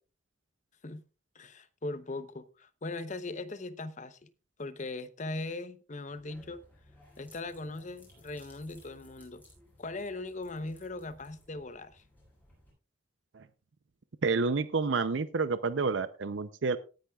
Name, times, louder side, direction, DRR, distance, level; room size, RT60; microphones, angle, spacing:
voice 1, 1.3-4.3 4.6-6.6 7.2-9.4 9.8-12.0, left 2 dB, 40° left, 0.8 m, -39 dB
sound 1, 6.1-12.7, left 1 dB, 10° left, 7.8 m, -59 dB
voice 2, 14.2-16.8, right 4 dB, 75° right, 0.6 m, -29 dB
18.5 x 10.5 x 2.4 m
head